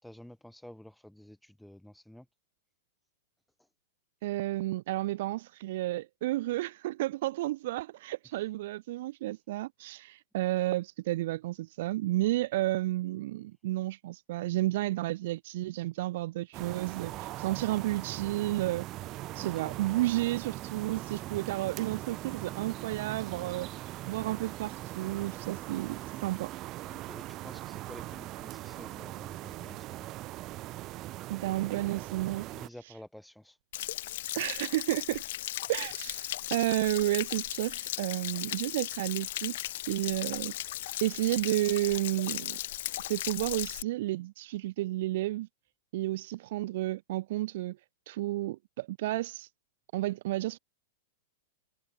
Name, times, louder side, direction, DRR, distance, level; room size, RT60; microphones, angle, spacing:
voice 1, 0.0-2.3 3.6-3.7 19.3-19.8 23.2-23.6 24.3-24.4 26.8-30.1 31.7-31.8 32.5-33.6 35.1-35.3, left 1 dB, ahead, 7.4 m, -51 dB
voice 2, 4.2-18.9 19.3-23.7 24.0-26.5 31.3-32.5 34.3-35.2 35.7-39.6 39.9-40.5 41.0-42.6 43.1-45.5 45.9-47.8 48.1-49.5 49.9-50.6, right 16 dB, 60° right, 0.9 m, -31 dB
sound 1, 16.5-32.7, right 17 dB, 40° right, 2.3 m, -41 dB
Stream / Splash splatter / Trickle dribble, 33.7-43.8, left 15 dB, 65° left, 1.5 m, -37 dB
hypercardioid pair, 115°, 0 cm